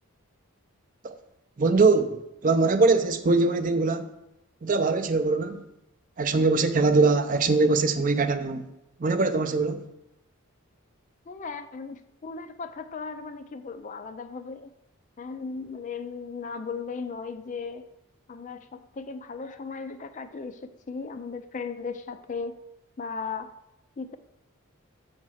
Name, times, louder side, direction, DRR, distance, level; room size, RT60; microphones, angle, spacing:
voice 1, 1.6-4.1 4.6-5.6 6.2-8.6 9.0-9.9, right 3 dB, 35° right, 0.5 m, -22 dB
voice 2, 11.3-14.7 15.2-17.9 18.3-22.5 23.0-23.5 24.0-24.2, left 5 dB, 35° left, 0.4 m, -36 dB
7.3 x 4.3 x 6.2 m
head